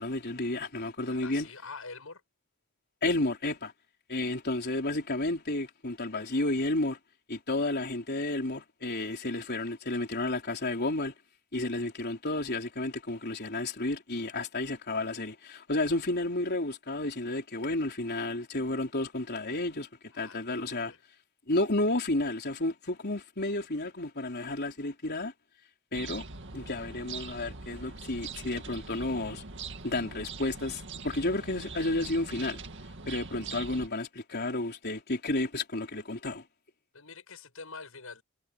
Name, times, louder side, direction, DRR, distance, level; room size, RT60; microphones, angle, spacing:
voice 1, 0.0-1.5 3.0-3.7 4.1-7.0 7.3-11.1 11.5-19.9 20.1-20.9 21.5-25.3 25.9-26.2 26.5-29.4 29.8-32.6 33.1-36.4, left 2 dB, 50° left, 4.0 m, -31 dB
voice 2, 1.1-2.2 20.1-21.0 36.9-38.2, left 4 dB, 70° left, 7.9 m, -45 dB
sound 1, 25.9-33.9, right 4 dB, 55° right, 2.2 m, -42 dB
head